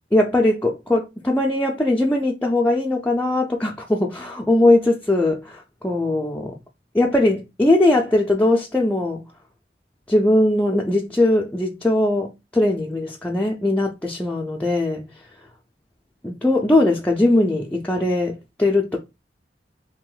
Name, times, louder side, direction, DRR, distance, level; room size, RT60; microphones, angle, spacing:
voice 1, 0.1-6.5 6.9-9.2 10.1-15.1 16.2-19.0, left 1 dB, 10° left, 0.3 m, -20 dB
2.7 x 2.4 x 3.7 m
head